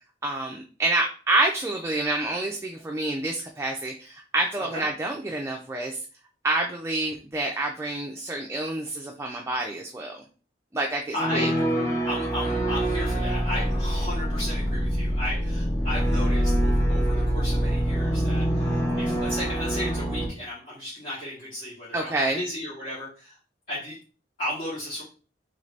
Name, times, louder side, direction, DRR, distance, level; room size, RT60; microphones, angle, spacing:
voice 1, 0.2-6.0 6.4-10.2 10.7-11.5 21.9-22.4, right 2 dB, 15° right, 1 dB, 0.3 m, -28 dB
voice 2, 11.1-11.5 12.0-23.4 23.7-24.0 24.4-25.0, left 1 dB, 45° left, -9 dB, 1.2 m, -34 dB
sound 1, 11.1-20.3, equal, 15° left, 0.7 m, -25 dB
3.1 x 2.6 x 3.2 m, 0.37 s
head